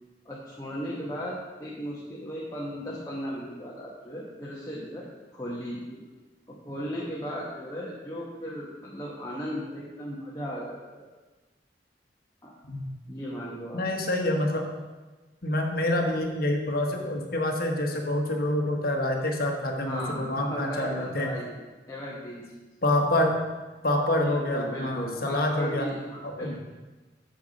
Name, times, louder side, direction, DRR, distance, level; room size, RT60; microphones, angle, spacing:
voice 1, 0.2-5.1 5.3-6.0 6.5-11.0 12.4-12.5 13.1-13.8 19.8-21.6 21.9-22.4 24.2-26.6, equal, 20° left, -5 dB, 1.2 m, -36 dB
voice 2, 13.7-14.7 15.4-21.3 22.8-23.3 23.8-25.9 26.2-26.6, left 1 dB, 55° left, 2 dB, 1.2 m, -27 dB
7.5 x 6.9 x 5.2 m, 1.2 s
head